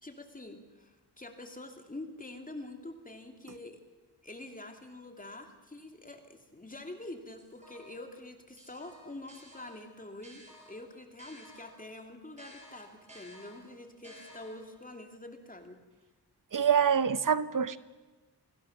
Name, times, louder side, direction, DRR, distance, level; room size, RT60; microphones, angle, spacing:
voice 1, 0.0-3.8 4.2-15.8, left 2 dB, 20° left, 5 dB, 2.7 m, -46 dB
sound 1, 7.4-8.1 8.6-11.9 12.4-14.8, equal, 15° right, 7.3 m, -54 dB
voice 2, 16.5-17.8, right 7 dB, 55° right, 15 dB, 1.0 m, -25 dB
28.0 x 20.5 x 7.2 m, 1.2 s
wide cardioid pair, 160°, 40 cm